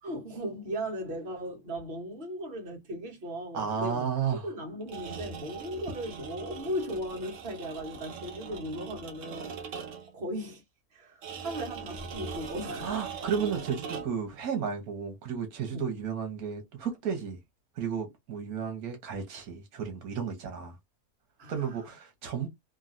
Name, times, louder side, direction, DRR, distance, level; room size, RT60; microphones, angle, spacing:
voice 1, 0.0-4.1 4.4-10.6 10.9-13.0 15.7-15.9 21.4-21.9, equal, 45° right, 1.4 m, -37 dB
voice 2, 3.5-4.5 12.8-17.4 17.8-20.7 21.5-22.5, right 7 dB, 80° right, 1.3 m, -33 dB
sound 1, 4.8-10.2 11.2-14.3, right 6 dB, 65° right, 1.1 m, -41 dB
3.0 x 2.6 x 2.5 m
omnidirectional pair, 1.5 m